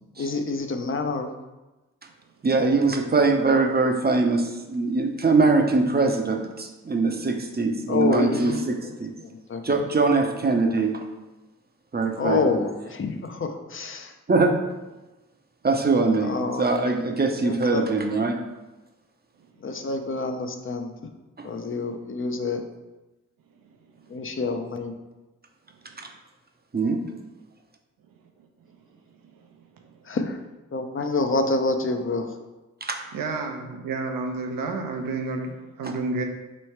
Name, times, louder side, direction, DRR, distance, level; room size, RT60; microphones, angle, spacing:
voice 1, 0.2-1.3 7.9-8.9 9.2-9.7 12.2-14.1 16.2-16.6 17.4-17.8 19.6-20.9 21.4-22.6 24.1-24.9 30.1-30.4 30.7-32.3, left 3 dB, 40° left, 6 dB, 0.6 m, -27 dB
voice 2, 2.4-9.1 9.6-11.0 11.9-12.6 14.3-14.5 15.6-18.4 26.0-26.1 26.7-27.0 32.8-33.0 35.8-35.9, right 3 dB, 30° right, 3 dB, 0.6 m, -22 dB
voice 3, 33.1-36.2, right 3 dB, 75° right, 4 dB, 0.7 m, -30 dB
3.2 x 3.1 x 4.5 m, 1.1 s
supercardioid pair, 40°, 34 cm